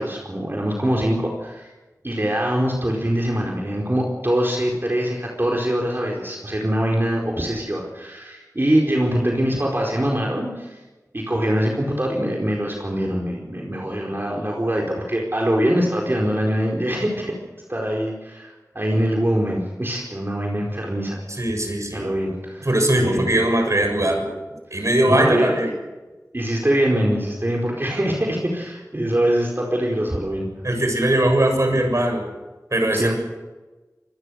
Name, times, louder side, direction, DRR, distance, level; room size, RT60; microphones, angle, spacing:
voice 1, 0.0-1.7 2.0-10.8 11.1-17.3 17.7-21.2 21.9-22.7 23.0-23.3 24.7-25.6 26.3-30.5 32.9-33.1, equal, 35° right, -1 dB, 4.6 m, -23 dB
voice 2, 21.4-22.1 22.6-24.3 24.7-25.7 30.6-32.3 32.7-33.1, right 1 dB, 55° right, 4 dB, 7.2 m, -20 dB
26.0 x 21.5 x 6.6 m, 1.2 s
wide cardioid pair, 55°, 6 cm